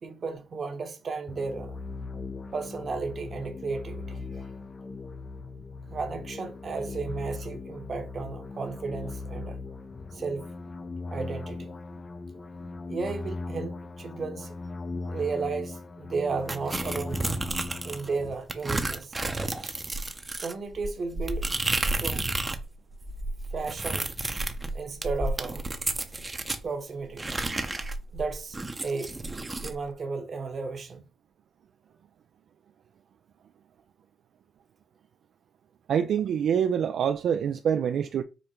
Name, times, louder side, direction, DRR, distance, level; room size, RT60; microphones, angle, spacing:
voice 1, 0.0-1.8 2.5-4.2 5.9-9.6 10.1-10.4 11.1-11.7 12.9-14.5 15.1-17.3 17.8-19.1 19.6-19.7 20.4-21.5 21.9-22.3 23.5-24.1 24.7-25.6 26.6-27.3 28.1-29.1 29.6-31.0, right 4 dB, 45° right, 1.0 m, -34 dB
sound 1, 1.3-18.3, left 3 dB, 30° left, 0.4 m, -39 dB
sound 2, 16.5-18.1 18.5-22.6 22.9-26.6 27.2-29.7, right 2 dB, 20° right, 0.7 m, -31 dB
voice 2, 35.9-38.2, right 8 dB, 65° right, 0.3 m, -25 dB
5.1 x 2.1 x 4.3 m
cardioid pair, 90°, 0 cm